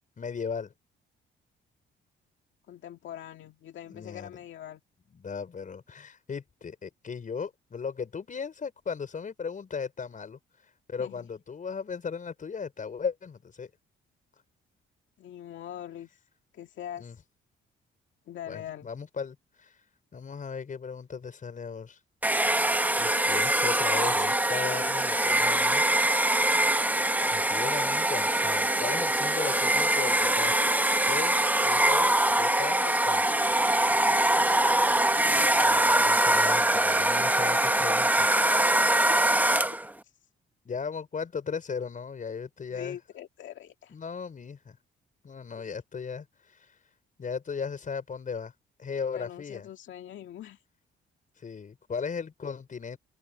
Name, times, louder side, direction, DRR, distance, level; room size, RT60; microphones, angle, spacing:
voice 1, 0.2-0.7 3.9-4.4 5.1-10.4 10.9-13.7 17.0-17.2 18.5-19.7 20.1-22.0 23.0-25.8 27.3-30.7 31.1-31.4 31.6-33.2 35.5-38.3 40.6-43.0 43.9-44.8 45.2-46.7 47.2-48.5 48.8-49.7 51.4-53.0, left 6 dB, 40° left, 5.5 m, -37 dB
voice 2, 2.7-4.8 11.0-11.3 15.2-16.2 16.5-17.2 18.3-18.9 32.8-33.0 34.0-34.2 39.1-39.6 40.0-40.1 42.7-44.0 45.6-45.8 49.1-50.6, left 11 dB, 75° left, 2.0 m, -43 dB
Domestic sounds home sounds, 22.2-39.9, right 1 dB, 10° right, 1.2 m, -23 dB
open air
cardioid pair, 90°, 20 cm